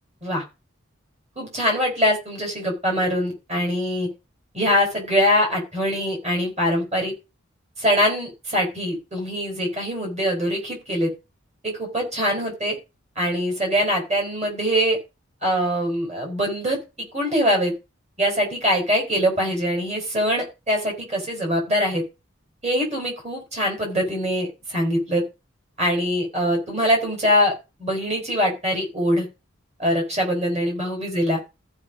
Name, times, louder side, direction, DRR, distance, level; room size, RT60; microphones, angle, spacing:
voice 1, 1.4-4.1 4.5-7.1 7.8-11.1 11.6-12.8 13.2-15.0 15.4-16.8 17.1-17.7 18.2-22.0 22.6-25.2 25.8-27.5 27.8-29.3 29.8-31.4, equal, 30° right, 1 dB, 4.4 m, -23 dB
14.5 x 5.1 x 5.1 m, 0.27 s
head